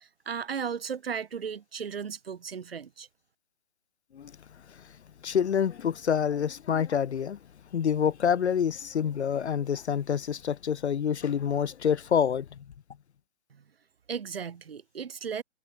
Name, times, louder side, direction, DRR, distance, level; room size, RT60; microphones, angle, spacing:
voice 1, 0.0-3.1 13.5-13.6 14.1-15.4, right 7 dB, 50° right, 7.9 m, -36 dB
voice 2, 5.2-7.4 7.7-12.6, left 8 dB, 60° left, 0.7 m, -27 dB
hypercardioid pair, 175°, 38 cm